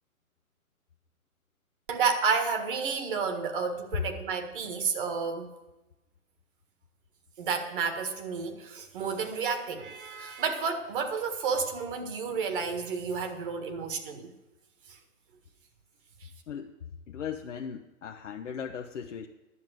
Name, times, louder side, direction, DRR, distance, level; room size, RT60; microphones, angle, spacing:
voice 1, 1.9-5.5 7.4-14.3, right 5 dB, 35° right, 1.7 m, -31 dB
voice 2, 16.5-16.8 17.1-19.3, left 7 dB, 55° left, 0.9 m, -38 dB
11.0 x 7.2 x 7.8 m
figure-of-eight pair, 135°, 43 cm